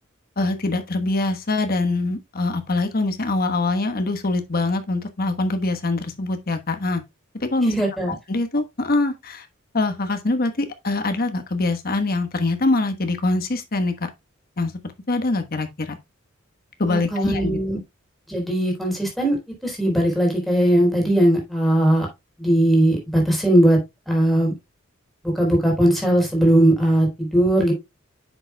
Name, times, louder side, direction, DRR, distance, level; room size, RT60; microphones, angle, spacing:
voice 1, 0.4-7.0 7.4-7.7 8.1-9.5 9.7-13.9 14.6-14.8 15.1-16.0 16.8-17.6, left 2 dB, 45° left, 1.2 m, -23 dB
voice 2, 7.7-8.1 16.9-17.8 18.3-19.4 19.6-22.1 22.4-23.8 24.1-24.5 25.4-27.7, right 1 dB, ahead, 4.1 m, -19 dB
9.6 x 6.8 x 2.3 m
head